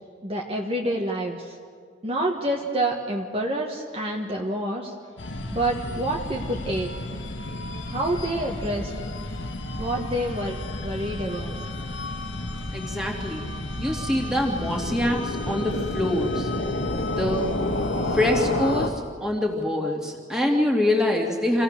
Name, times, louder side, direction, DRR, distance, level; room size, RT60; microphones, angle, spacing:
voice 1, 0.2-1.6 2.0-4.9 5.5-6.9 7.9-8.9 9.8-11.6, right 1 dB, 30° right, -1 dB, 1.5 m, -28 dB
sound 1, 5.2-18.9, left 1 dB, 85° left, 1.6 m, -30 dB
voice 2, 12.7-13.4 13.8-16.5 17.1-17.5 18.1-21.6, left 1 dB, 5° right, -1 dB, 2.5 m, -25 dB
27.0 x 16.5 x 6.7 m, 2.1 s
head